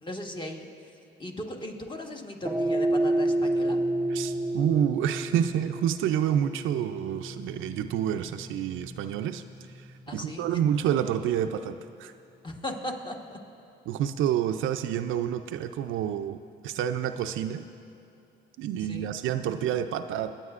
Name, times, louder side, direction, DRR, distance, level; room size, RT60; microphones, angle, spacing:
voice 1, 0.0-0.7 1.2-3.8 10.1-10.5 12.4-13.4 18.8-19.1, left 1 dB, 25° left, 2 dB, 1.3 m, -37 dB
sound 1, 2.4-10.9, right 1 dB, 5° right, 0.6 m, -31 dB
voice 2, 4.1-9.4 10.1-12.1 13.9-16.4 16.6-17.7 18.6-20.4, right 10 dB, 85° right, 9 dB, 0.5 m, -28 dB
25.0 x 8.9 x 2.5 m, 2.8 s
cardioid pair, 90°, 20 cm